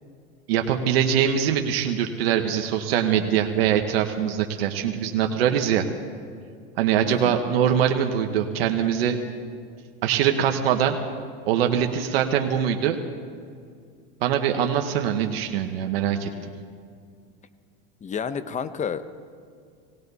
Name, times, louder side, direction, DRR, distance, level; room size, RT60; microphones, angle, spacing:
voice 1, 0.5-5.8 6.8-9.2 10.0-11.0 11.5-13.0 14.2-16.3, right 9 dB, 90° right, 5 dB, 1.1 m, -23 dB
voice 2, 7.1-7.4 18.0-19.2, left 6 dB, 25° left, 13 dB, 0.8 m, -30 dB
19.0 x 17.5 x 4.1 m, 2.2 s
supercardioid pair, 110°, 29 cm